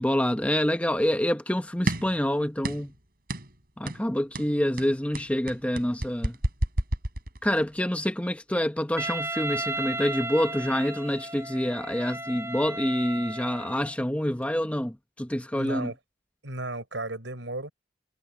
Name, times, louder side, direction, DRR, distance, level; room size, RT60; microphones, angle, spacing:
voice 1, 0.0-2.9 3.8-6.4 7.4-15.9, equal, 5° left, 0.9 m, -27 dB
sound 1, 1.9-2.2 2.6-3.0 3.3-3.5 3.9-4.1 4.3-7.7, right 1 dB, 55° right, 5.9 m, -30 dB
Wind instrument woodwind instrument, 9.0-14.0, right 1 dB, 15° right, 3.4 m, -34 dB
voice 2, 15.5-16.0 16.4-17.7, right 2 dB, 85° right, 5.7 m, -34 dB
head